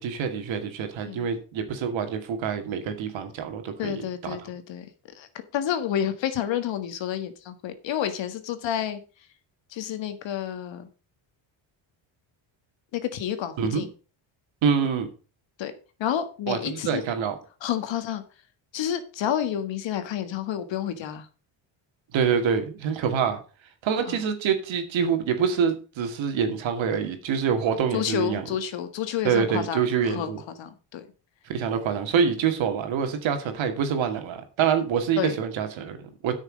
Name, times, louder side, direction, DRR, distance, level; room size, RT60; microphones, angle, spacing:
voice 1, 0.0-4.4 13.6-13.8 14.6-15.1 16.5-17.3 22.1-23.4 23.8-28.4 29.2-30.4 31.5-36.3, right 7 dB, 75° right, 6 dB, 2.3 m, -26 dB
voice 2, 3.8-4.9 5.1-5.3 5.5-9.0 9.7-10.9 12.9-13.9 15.6-15.7 16.0-17.0 17.6-18.2 18.7-21.3 24.0-24.2 27.9-31.1 35.2-35.3, left 10 dB, 70° left, 9 dB, 1.8 m, -30 dB
9.0 x 6.5 x 6.3 m, 0.35 s
cardioid pair, 95°, 47 cm